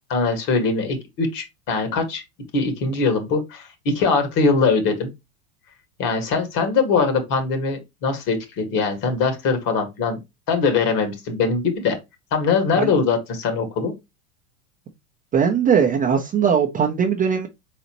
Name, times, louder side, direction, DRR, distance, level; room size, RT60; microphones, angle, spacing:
voice 1, 0.1-2.2 2.5-5.1 6.0-10.2 10.5-12.0 12.3-13.9, left 4 dB, 45° left, 1.8 m, -22 dB
voice 2, 15.3-17.5, right 7 dB, 20° right, 0.5 m, -19 dB
4.1 x 4.0 x 2.9 m
hypercardioid pair, 105°, 46 cm